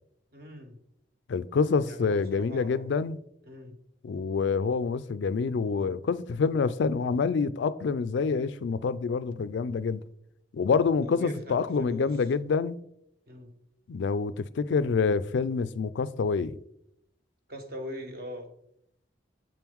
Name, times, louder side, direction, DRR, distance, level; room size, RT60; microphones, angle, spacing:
voice 1, 0.3-0.8 1.8-2.9 3.4-3.8 11.0-12.2 13.3-13.5 17.5-18.5, equal, 55° right, 1.1 m, -41 dB
voice 2, 1.3-3.2 4.0-10.0 10.5-12.8 13.9-16.6, left 5 dB, 75° left, 0.3 m, -27 dB
7.5 x 4.5 x 3.6 m
head